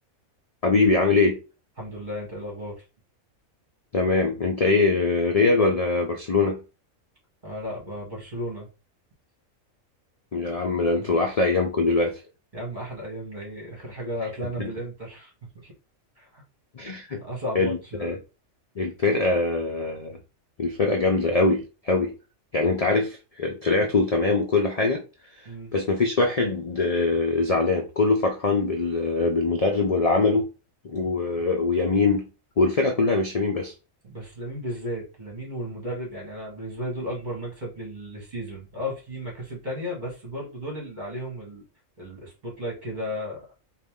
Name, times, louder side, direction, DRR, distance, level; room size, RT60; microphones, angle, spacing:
voice 1, 0.6-1.4 3.9-6.6 10.3-12.2 14.6-14.7 16.7-17.2 17.5-18.2 18.8-20.2 20.6-22.1 22.5-25.0 25.7-30.5 30.8-32.3 32.6-33.7, left 3 dB, 60° left, 2 dB, 0.4 m, -23 dB
voice 2, 1.8-2.8 7.4-8.7 11.0-11.1 12.5-15.7 16.2-16.4 17.2-18.1 25.5-25.7 34.0-41.6 42.0-43.5, equal, 35° right, -2 dB, 1.8 m, -34 dB
4.1 x 2.5 x 3.5 m, 0.31 s
omnidirectional pair, 1.4 m